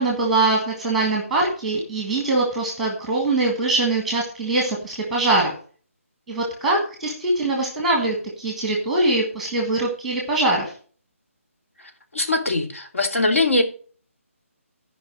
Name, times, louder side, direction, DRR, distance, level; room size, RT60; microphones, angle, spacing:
voice 1, 0.0-5.5 6.3-10.7, right 2 dB, ahead, 0 dB, 1.5 m, -22 dB
voice 2, 12.1-13.6, left 2 dB, 65° left, 3 dB, 2.9 m, -21 dB
13.5 x 5.3 x 6.3 m, 0.42 s
hypercardioid pair, 170°, 8 cm